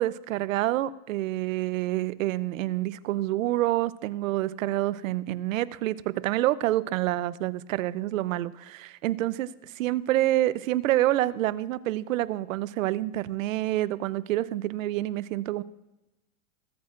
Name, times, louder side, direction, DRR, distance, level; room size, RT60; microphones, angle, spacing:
voice 1, 0.0-15.6, right 15 dB, 85° right, 18 dB, 0.6 m, -27 dB
21.5 x 8.6 x 2.5 m, 0.98 s
supercardioid pair, 175°, 39 cm